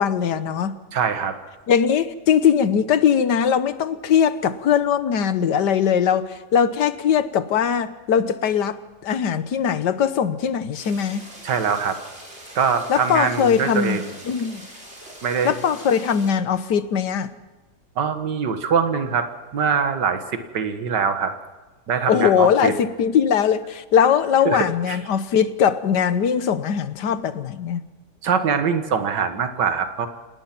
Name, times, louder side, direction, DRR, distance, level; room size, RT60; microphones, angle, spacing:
voice 1, 0.0-0.8 1.7-11.2 12.9-14.0 14.3-14.6 15.4-17.3 22.1-27.8, left 8 dB, 75° left, 13 dB, 1.7 m, -20 dB
voice 2, 0.9-1.4 11.4-12.0 12.5-14.1 15.2-15.6 18.0-19.3 19.5-21.3 21.9-22.7 24.5-25.0 28.2-30.1, right 6 dB, 80° right, 8 dB, 2.1 m, -23 dB
sound 1, 10.8-16.3, right 1 dB, 40° right, 5.8 m, -42 dB
27.0 x 19.0 x 6.0 m, 1.2 s
omnidirectional pair, 1.8 m